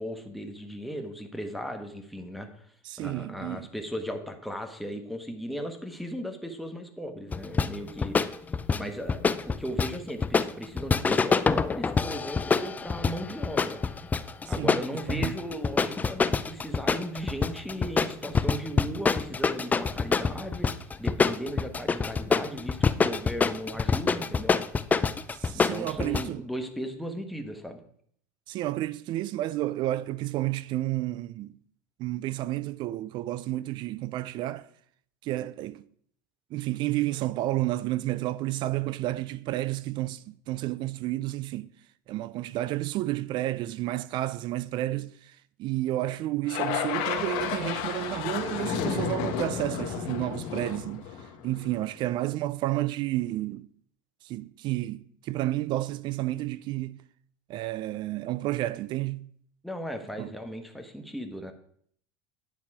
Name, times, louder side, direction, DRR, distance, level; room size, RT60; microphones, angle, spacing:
voice 1, 0.0-2.6 3.0-8.2 8.8-13.8 14.5-24.6 25.5-27.8 59.6-61.5, equal, ahead, 1.3 m, -37 dB
voice 2, 2.8-3.7 7.8-7.9 14.6-15.4 25.3-26.4 28.5-31.6 32.0-34.7 35.2-35.8 36.5-41.7 42.1-53.7 54.2-57.0 57.5-59.3 60.2-60.3, right 15 dB, 50° right, 0.4 m, -31 dB
sound 1, 7.3-26.2, left 5 dB, 15° left, 0.4 m, -26 dB
sound 2, 46.5-51.8, left 8 dB, 60° left, 1.4 m, -32 dB
9.5 x 7.3 x 4.8 m
supercardioid pair, 115°, 10 cm